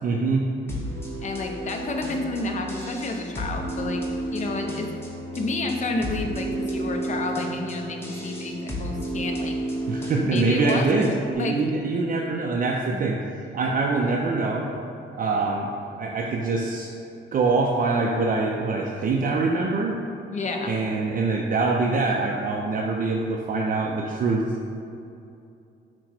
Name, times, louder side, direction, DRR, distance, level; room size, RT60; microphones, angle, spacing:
voice 1, 0.0-0.4 9.9-13.2 13.5-14.7 15.1-16.9 17.3-20.0 20.7-24.5, right 3 dB, 45° right, -1 dB, 0.4 m, -24 dB
sound 1, 0.7-11.3, right 1 dB, 10° left, 0.9 m, -32 dB
voice 2, 1.2-4.0 4.3-4.9 5.3-9.5 10.2-11.6 12.9-13.0 20.3-20.7, left 3 dB, 40° left, 3 dB, 0.6 m, -30 dB
5.8 x 2.1 x 4.3 m, 2.7 s
cardioid pair, 90°, 20 cm